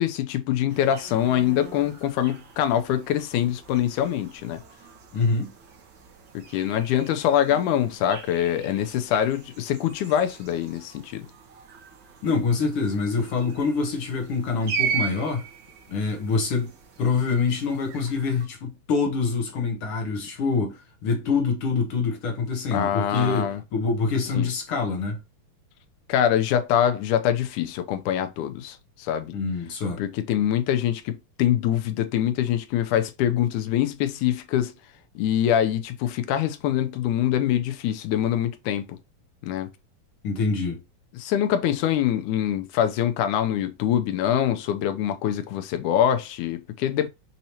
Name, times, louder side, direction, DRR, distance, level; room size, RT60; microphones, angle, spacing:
voice 1, 0.0-4.6 6.3-11.2 22.7-23.6 24.3-24.5 26.1-29.3 30.0-34.7 35.2-39.0 39.4-39.7 41.1-47.1, left 10 dB, 80° left, 2.2 m, -24 dB
sound 1, 0.7-18.5, right 7 dB, 50° right, 1.5 m, -38 dB
voice 2, 5.1-5.5 12.2-15.5 15.9-16.7 17.0-25.2 29.3-30.0 40.2-40.8, left 4 dB, 65° left, 1.5 m, -25 dB
6.6 x 2.8 x 2.8 m
omnidirectional pair, 3.6 m